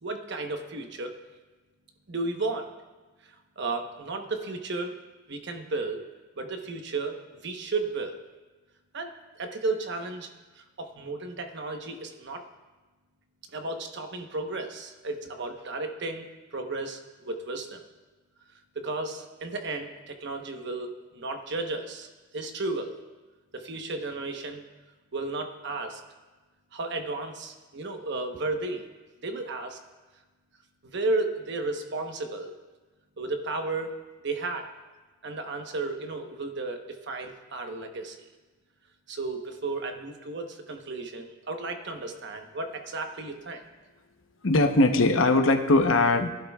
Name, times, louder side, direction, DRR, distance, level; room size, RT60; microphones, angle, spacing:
voice 1, 0.0-1.2 2.1-2.7 3.2-4.9 5.3-6.0 6.4-8.2 8.9-12.4 13.5-16.3 16.5-17.8 18.7-22.1 22.3-23.0 23.5-24.7 25.1-26.0 26.7-28.9 29.2-29.8 30.8-32.5 33.2-33.9 34.2-34.7 35.2-38.2 39.1-43.6, right 3 dB, 60° right, 5 dB, 1.1 m, -33 dB
voice 2, 44.4-46.3, left 2 dB, 85° left, 5 dB, 1.0 m, -20 dB
20.5 x 11.5 x 2.4 m, 1.2 s
head